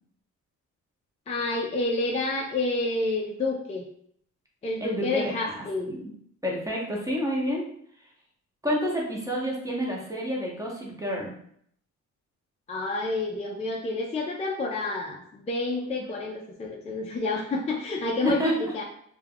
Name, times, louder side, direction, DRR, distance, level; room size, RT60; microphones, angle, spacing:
voice 1, 1.3-3.9 4.6-5.9 12.7-18.8, left 2 dB, 20° left, -1 dB, 0.4 m, -29 dB
voice 2, 4.8-6.1 6.4-7.7 8.6-11.3 18.2-18.7, equal, 10° right, -3 dB, 0.7 m, -29 dB
2.2 x 2.2 x 3.4 m, 0.67 s
cardioid pair, 90°, 30 cm